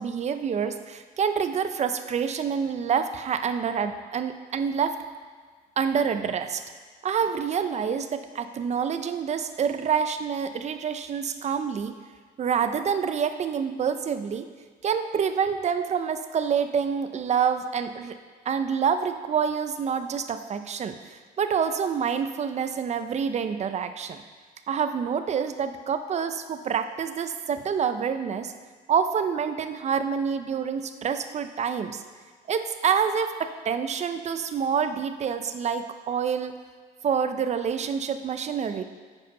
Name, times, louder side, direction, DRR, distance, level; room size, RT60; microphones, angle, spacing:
voice 1, 0.0-5.0 5.8-6.6 7.0-11.9 12.4-14.5 14.8-18.2 18.5-24.2 24.7-28.5 28.9-32.0 32.5-36.5 37.0-38.8, right 7 dB, 40° right, 9 dB, 0.7 m, -27 dB
9.4 x 8.4 x 5.4 m, 1.5 s
cardioid pair, 110°, 17 cm